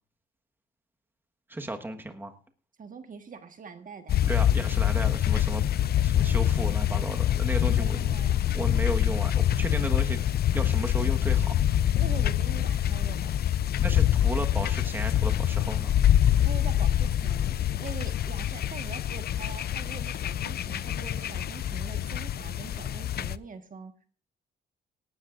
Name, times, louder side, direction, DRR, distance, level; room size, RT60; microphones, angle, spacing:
voice 1, 1.5-2.3 4.2-5.6 6.0-8.0 8.5-10.2 10.5-11.5 13.8-15.9, right 1 dB, 10° right, 5 dB, 1.4 m, -34 dB
voice 2, 2.8-4.2 7.5-8.4 12.0-13.4 16.4-17.5 17.8-24.1, right 5 dB, 40° right, 7 dB, 1.5 m, -43 dB
sound 1, 4.1-23.4, left 11 dB, 50° left, 0.5 m, -25 dB
18.0 x 13.0 x 2.5 m, 0.40 s
cardioid pair, 90°, 20 cm